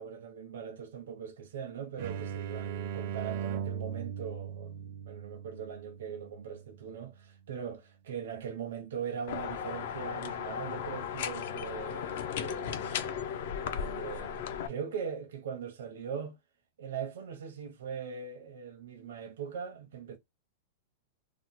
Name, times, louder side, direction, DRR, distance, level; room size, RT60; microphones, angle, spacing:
voice 1, 0.0-13.2 13.7-16.4 16.8-20.2, right 7 dB, 80° right, 0.7 m, -41 dB
sound 1, 2.0-7.5, right 8 dB, 40° right, 0.4 m, -39 dB
sound 2, 9.3-14.7, left 8 dB, 50° left, 0.4 m, -36 dB
2.9 x 2.1 x 3.9 m
supercardioid pair, 180°, 0 cm